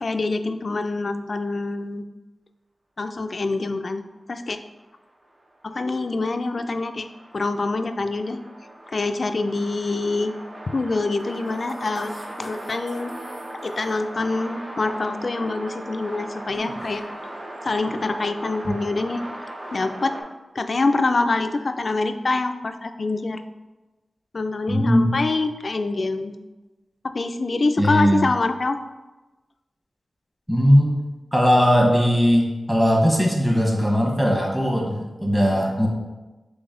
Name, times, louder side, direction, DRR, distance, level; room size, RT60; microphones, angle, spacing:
voice 1, 0.0-2.0 3.0-4.0 4.3-4.6 5.6-7.1 7.3-8.4 8.9-10.3 10.7-12.1 12.4-13.2 13.6-17.0 17.6-19.2 19.7-20.2 20.6-23.4 24.3-26.4 27.0-28.8, left 3 dB, 55° left, 8 dB, 0.3 m, -25 dB
sound 1, 5.3-20.2, right 1 dB, 45° right, 0.8 m, -38 dB
voice 2, 24.7-25.1 27.8-28.2 30.5-30.9 31.3-35.9, equal, 5° right, -1 dB, 1.1 m, -19 dB
4.0 x 3.4 x 3.7 m, 1.1 s
cardioid pair, 55°, 0 cm